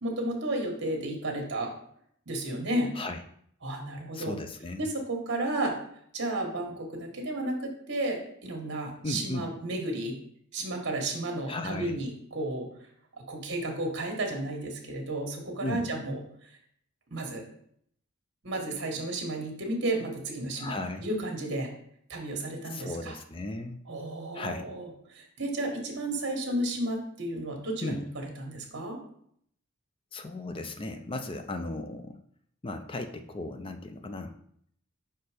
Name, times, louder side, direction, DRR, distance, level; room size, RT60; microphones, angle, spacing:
voice 1, 0.0-1.7 2.3-2.9 3.6-4.4 4.8-5.7 6.1-10.2 10.5-12.7 13.2-16.2 17.1-17.4 18.4-21.7 22.1-23.1 23.9-29.0, right 1 dB, 55° right, 2 dB, 1.5 m, -33 dB
voice 2, 4.1-4.9 9.0-9.5 11.5-12.0 15.6-15.8 20.6-21.1 22.7-23.8 24.3-24.7 27.8-28.0 30.1-32.2 32.6-34.3, left 2 dB, 25° left, 8 dB, 0.5 m, -36 dB
5.4 x 4.3 x 5.0 m, 0.67 s
head